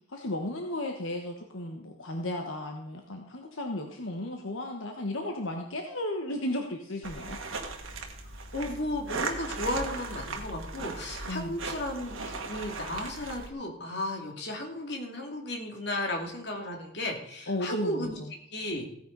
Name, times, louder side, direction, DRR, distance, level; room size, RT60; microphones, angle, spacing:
voice 1, 0.1-7.4 11.3-11.6 17.5-18.1, left 1 dB, 80° left, 3 dB, 1.3 m, -34 dB
sound 1, 7.0-13.5, right 3 dB, 85° right, 1.8 m, -37 dB
voice 2, 8.5-18.2 18.5-18.9, left 1 dB, 55° left, 2 dB, 2.5 m, -34 dB
16.0 x 9.6 x 4.0 m, 0.70 s
head